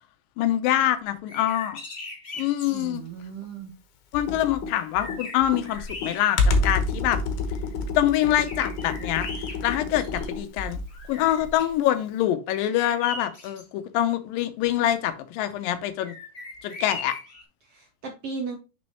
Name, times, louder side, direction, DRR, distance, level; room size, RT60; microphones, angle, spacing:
voice 1, 0.4-1.8 2.4-3.0 4.1-7.2 8.0-9.3 9.6-10.8 11.1-16.1 16.6-17.2, left 12 dB, 85° left, 2.4 m, -25 dB
sound 1, 1.1-2.9 4.3-4.4 4.7-6.6 7.2-7.3 8.5-10.5 10.9-11.8 12.5-13.6 16.0-17.4, left 3 dB, 55° left, 0.7 m, -39 dB
voice 2, 2.7-3.7 17.6-18.6, right 5 dB, 80° right, 1.3 m, -36 dB
Computer keyboard, 4.1-11.0, left 3 dB, 70° left, 2.5 m, -28 dB
6.3 x 6.1 x 2.9 m
omnidirectional pair, 4.0 m